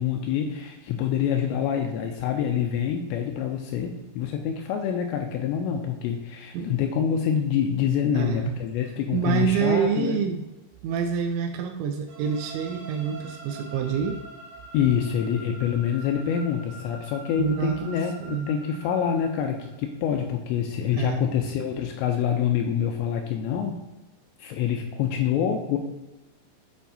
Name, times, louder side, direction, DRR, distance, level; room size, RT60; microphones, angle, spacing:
voice 1, 0.0-10.2 14.7-23.8 24.4-25.8, left 8 dB, 85° left, 3 dB, 2.6 m, -26 dB
voice 2, 8.2-8.6 9.1-10.4 10.8-14.2 17.4-18.5 20.9-21.3, right 7 dB, 85° right, 5 dB, 2.7 m, -27 dB
sound 1, 12.1-19.9, right 2 dB, 65° right, 2.9 m, -45 dB
9.1 x 4.7 x 2.7 m, 1.0 s
omnidirectional pair, 5.5 m